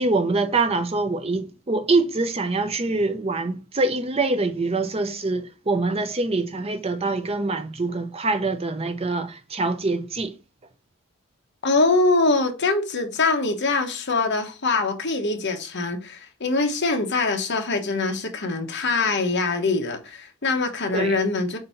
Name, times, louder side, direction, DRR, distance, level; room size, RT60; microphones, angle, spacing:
voice 1, 0.0-10.4 20.9-21.2, right 3 dB, 25° right, 0.5 m, -24 dB
voice 2, 11.6-21.6, left 3 dB, 50° left, 1.1 m, -23 dB
7.7 x 2.7 x 5.6 m
head